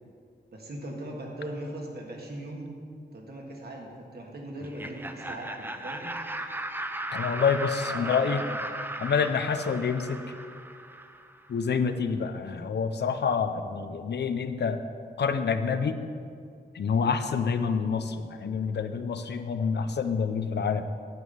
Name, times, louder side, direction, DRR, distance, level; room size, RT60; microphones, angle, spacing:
voice 1, 0.5-2.7 3.1-6.1 7.9-8.5, right 1 dB, 70° right, 0 dB, 1.7 m, -39 dB
Laughter, 4.6-11.4, right 1 dB, 10° right, 0.5 m, -36 dB
voice 2, 7.1-8.4 9.0-10.2 11.5-14.8 15.2-15.9 16.7-20.8, left 6 dB, 80° left, 9 dB, 0.6 m, -27 dB
9.4 x 5.3 x 7.9 m, 2.3 s
wide cardioid pair, 135°, 17 cm